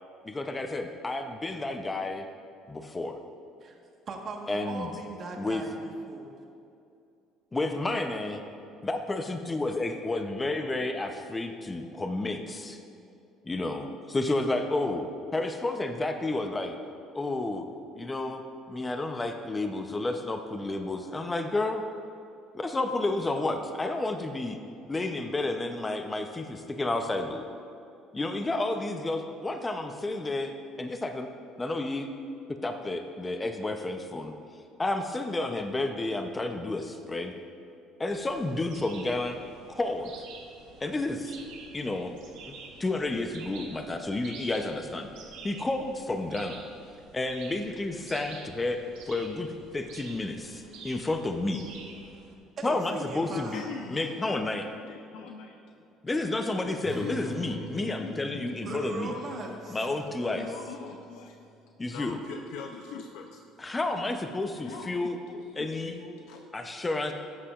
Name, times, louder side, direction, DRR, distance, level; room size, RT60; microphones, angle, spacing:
voice 1, 0.2-2.2 2.7-3.2 4.5-4.9 5.4-5.6 7.5-8.4 8.8-12.8 13.4-16.8 17.1-17.6 17.9-18.4 18.7-21.8 22.5-24.6 24.8-27.4 28.1-30.5 30.8-31.3 31.6-32.1 32.6-34.3 34.8-37.3 38.0-39.4 39.7-40.1 40.8-41.4 41.7-42.1 42.5-42.6 42.8-45.1 45.4-46.6 47.1-48.8 49.1-49.5 49.7-51.6 52.6-53.6 53.9-54.7 56.0-59.1 59.7-60.5 61.8-62.2 63.6-65.2 65.6-65.9 66.5-67.1, left 2 dB, 20° left, 5 dB, 0.7 m, -31 dB
voice 2, 4.1-6.3 52.6-53.6 58.7-59.9, right 3 dB, 45° right, 1 dB, 1.4 m, -39 dB
sound 1, 38.1-52.3, right 4 dB, 80° right, 1.2 m, -49 dB
voice 3, 53.3-54.5 54.8-55.6 57.0-61.4 61.9-63.5 64.5-66.5, left 6 dB, 80° left, 3 dB, 0.5 m, -43 dB
sound 2, 56.8-61.9, right 4 dB, 25° right, 1.7 m, -46 dB
13.0 x 8.5 x 2.5 m, 2.5 s
supercardioid pair, 95°, 0 cm